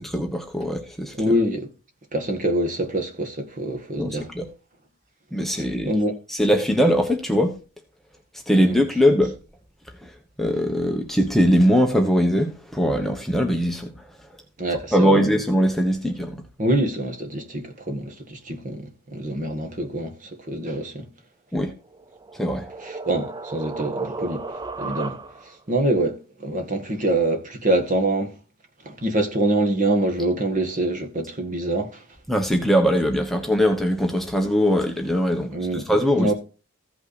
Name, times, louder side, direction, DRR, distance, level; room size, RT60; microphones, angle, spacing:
voice 1, 0.0-1.1 4.0-4.5 5.3-5.9 6.3-7.6 8.5-9.4 10.0-10.1 10.4-14.1 14.9-16.4 21.5-21.7 22.3-22.7 32.3-36.3, equal, ahead, 1.0 m, -21 dB
voice 2, 1.2-1.7 2.1-4.3 5.8-6.1 8.6-8.8 14.6-15.2 16.6-21.1 22.8-24.4 24.8-25.2 25.7-28.3 28.9-32.0 35.5-35.9 36.2-36.3, right 1 dB, 35° right, 1.7 m, -25 dB
sound 1, 21.8-25.6, right 3 dB, 20° right, 0.4 m, -34 dB
15.0 x 5.7 x 4.2 m
head